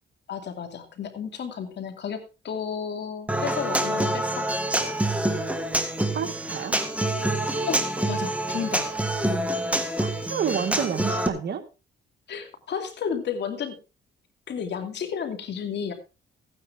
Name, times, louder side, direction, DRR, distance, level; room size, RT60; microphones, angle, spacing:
voice 1, 0.3-4.5 7.7-8.9 12.3-13.7 14.5-15.9, left 7 dB, 60° left, 6 dB, 2.7 m, -32 dB
Human voice / Acoustic guitar, 3.3-11.3, right 1 dB, 5° right, 1.8 m, -26 dB
voice 2, 6.1-6.7 10.0-11.6, right 7 dB, 55° right, 8 dB, 1.7 m, -29 dB
15.0 x 9.7 x 3.6 m, 0.30 s
cardioid pair, 90°, 20 cm